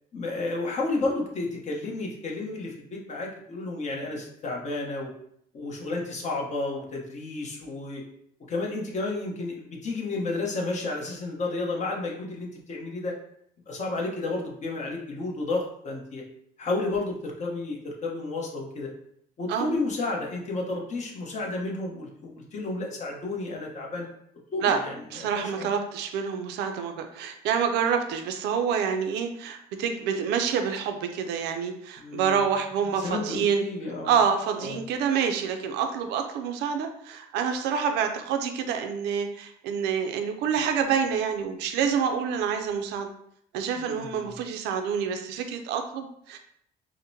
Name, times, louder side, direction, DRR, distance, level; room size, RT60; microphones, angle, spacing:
voice 1, 0.1-5.1 5.5-8.0 8.5-13.1 13.7-16.2 16.6-18.9 19.4-24.1 24.5-25.7 32.0-32.5 33.0-34.1 34.6-34.8 43.7-44.3, left 2 dB, 45° left, -1 dB, 1.0 m, -32 dB
voice 2, 25.1-33.6 34.0-43.1 43.5-46.4, right 7 dB, 85° right, 5 dB, 0.5 m, -27 dB
5.0 x 2.1 x 2.7 m, 0.70 s
cardioid pair, 110°, 17 cm